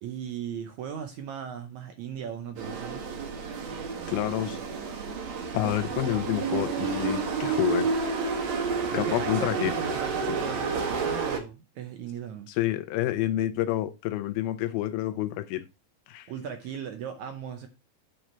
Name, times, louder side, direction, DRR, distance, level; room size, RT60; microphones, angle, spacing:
voice 1, 0.0-3.0 8.9-12.5 16.3-17.7, right 8 dB, 70° right, 1.8 m, -37 dB
sound 1, 2.6-11.4, right 4 dB, 55° right, 2.5 m, -30 dB
voice 2, 4.1-4.6 5.5-7.9 8.9-9.7 12.6-15.7 16.1-16.3, left 14 dB, 90° left, 2.7 m, -28 dB
9.3 x 5.0 x 4.3 m
omnidirectional pair, 4.2 m